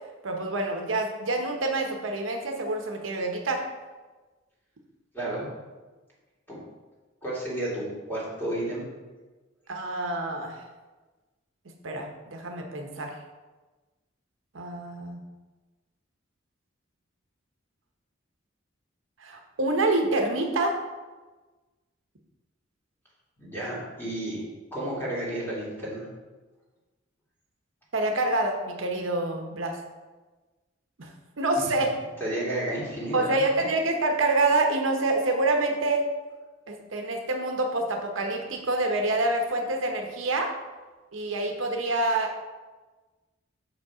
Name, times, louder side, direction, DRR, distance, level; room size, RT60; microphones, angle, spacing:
voice 1, 0.2-3.6 9.7-10.6 11.8-13.2 14.5-15.2 19.2-20.7 27.9-29.8 31.0-31.1 31.4-31.9 33.1-36.0 36.7-40.5 41.1-42.4, right 2 dB, 75° right, 3 dB, 0.9 m, -27 dB
voice 2, 5.1-5.5 6.5-6.6 7.2-8.9 23.4-24.4 24.7-26.1 31.5-31.8 32.2-33.7, right 1 dB, 10° left, -7 dB, 2.5 m, -32 dB
6.3 x 5.3 x 4.8 m, 1.3 s
head